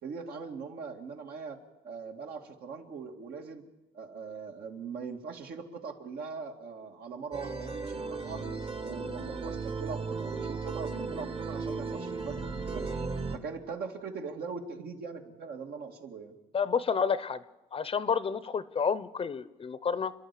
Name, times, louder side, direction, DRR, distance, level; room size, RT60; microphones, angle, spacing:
voice 1, 0.0-3.6 3.9-8.4 8.8-12.9 13.3-16.3, right 5 dB, 65° right, 2 dB, 2.3 m, -41 dB
sound 1, 7.3-13.4, right 4 dB, 35° right, 1.4 m, -35 dB
voice 2, 16.5-17.4 17.7-20.1, left 6 dB, 35° left, 16 dB, 0.8 m, -30 dB
29.5 x 11.0 x 8.4 m, 1.0 s
cardioid pair, 110°, 17 cm